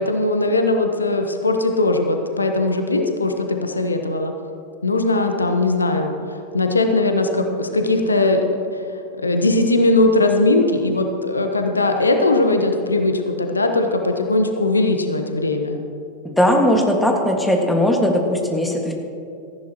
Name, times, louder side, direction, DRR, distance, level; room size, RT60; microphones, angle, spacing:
voice 1, 0.0-4.3 4.8-8.8 9.2-15.8, left 2 dB, 80° left, 5 dB, 1.0 m, -19 dB
voice 2, 16.2-18.9, left 1 dB, 5° left, 2 dB, 1.8 m, -18 dB
17.5 x 14.5 x 3.0 m, 2.6 s
figure-of-eight pair, 90°, 0 cm